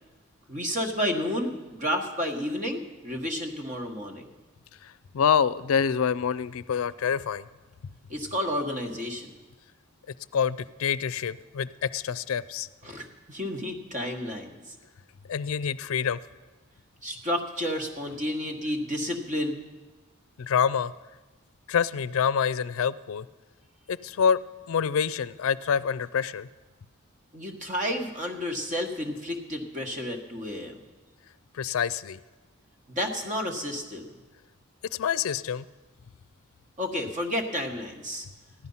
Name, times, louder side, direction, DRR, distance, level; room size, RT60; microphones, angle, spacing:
voice 1, 0.5-4.3 8.1-9.3 12.8-14.8 17.0-19.6 27.3-30.8 32.9-34.0 36.8-38.3, equal, 35° right, 3 dB, 1.4 m, -31 dB
voice 2, 4.8-7.5 10.3-12.7 15.3-16.2 20.4-20.9 21.7-23.3 23.9-24.4 24.7-26.5 31.5-32.2 35.0-35.6, left 7 dB, 80° left, 17 dB, 0.4 m, -26 dB
15.0 x 11.0 x 5.6 m, 1.2 s
head